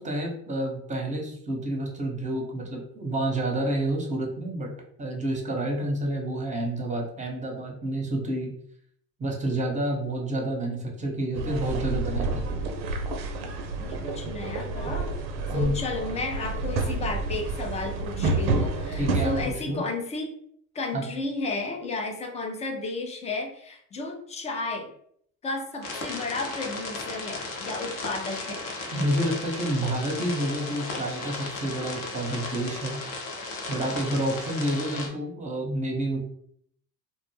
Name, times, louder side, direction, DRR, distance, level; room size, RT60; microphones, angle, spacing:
voice 1, 0.0-4.7 5.0-8.5 9.2-12.6 15.5-15.8 19.0-19.8 20.9-21.0 28.9-33.0 33.7-36.2, right 1 dB, 15° right, -1 dB, 0.8 m, -29 dB
sound 1, 11.3-19.5, right 3 dB, 85° right, 0.6 m, -29 dB
voice 2, 13.8-15.2 15.5-20.3 20.7-24.9 25.4-28.6, left 3 dB, 15° left, 3 dB, 0.3 m, -33 dB
sound 2, 25.8-35.1, left 3 dB, 40° left, 0.7 m, -35 dB
2.1 x 2.0 x 3.2 m, 0.67 s
hypercardioid pair, 65°, 50 cm